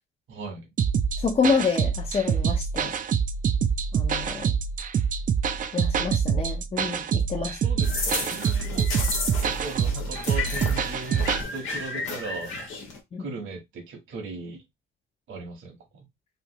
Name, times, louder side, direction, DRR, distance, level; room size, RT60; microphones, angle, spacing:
voice 1, 0.3-0.7 7.3-8.9 9.4-12.5 13.2-14.6 15.3-16.0, right 3 dB, 75° right, 1.3 m, -38 dB
sound 1, 0.8-11.4, right 7 dB, 40° right, 0.4 m, -26 dB
voice 2, 1.2-3.0 3.9-4.5 5.7-7.6 13.1-13.3, left 5 dB, 30° left, 0.6 m, -27 dB
sound 2, 7.8-13.0, left 4 dB, 90° left, 1.2 m, -32 dB
3.2 x 2.7 x 2.9 m
cardioid pair, 90°, 20 cm